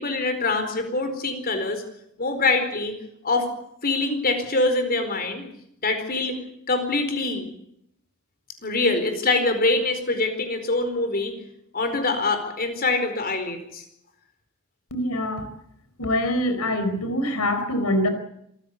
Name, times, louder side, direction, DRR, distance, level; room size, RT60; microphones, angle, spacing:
voice 1, 0.0-1.8 2.2-3.0 3.2-3.5 3.8-5.5 5.8-6.4 6.7-7.5 8.6-11.4 11.7-13.8, left 3 dB, 45° left, 8 dB, 4.5 m, -24 dB
voice 2, 14.9-15.5 16.0-18.1, left 1 dB, 85° left, 9 dB, 4.5 m, -24 dB
26.0 x 15.0 x 8.4 m, 0.76 s
head